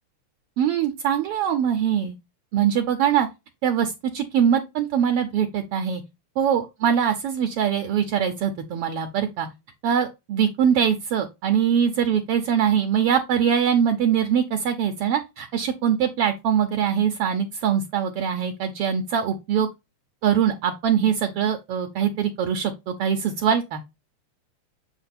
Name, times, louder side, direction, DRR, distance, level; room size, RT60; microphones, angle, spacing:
voice 1, 0.6-2.1 2.5-3.3 3.6-6.0 6.4-9.5 9.8-19.7 20.2-23.8, right 8 dB, 75° right, 1.4 m, -22 dB
8.0 x 2.9 x 4.2 m
omnidirectional pair, 3.3 m